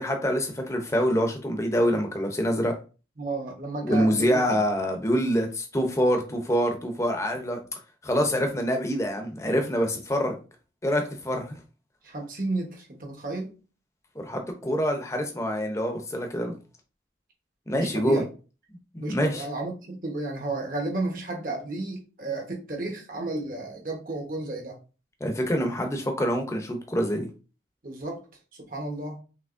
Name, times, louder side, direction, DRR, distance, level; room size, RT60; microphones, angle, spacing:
voice 1, 0.0-2.7 3.8-7.6 8.0-10.4 10.8-11.6 14.2-16.6 17.7-18.2 18.9-19.5 25.2-27.3, equal, 15° left, 4 dB, 0.7 m, -25 dB
voice 2, 3.2-4.4 12.0-13.5 17.7-18.3 19.0-24.8 27.8-28.2 28.5-29.2, right 2 dB, 50° right, 1 dB, 1.1 m, -32 dB
6.0 x 2.9 x 2.6 m, 0.34 s
head